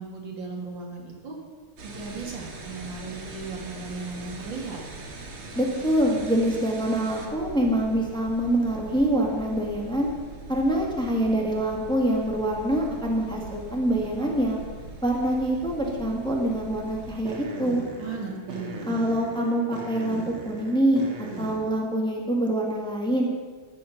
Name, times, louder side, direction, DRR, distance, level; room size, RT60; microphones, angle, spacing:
voice 1, 0.0-1.4 1.8-4.8 18.0-18.9, right 4 dB, 65° right, 0 dB, 3.0 m, -36 dB
sound 1, 1.8-21.6, right 3 dB, 85° right, 2.6 m, -41 dB
voice 2, 5.6-10.1 10.5-14.6 15.0-17.8 18.9-21.0 21.4-23.3, right 1 dB, ahead, -1 dB, 1.9 m, -25 dB
14.0 x 10.0 x 6.0 m, 1.5 s
omnidirectional pair, 2.3 m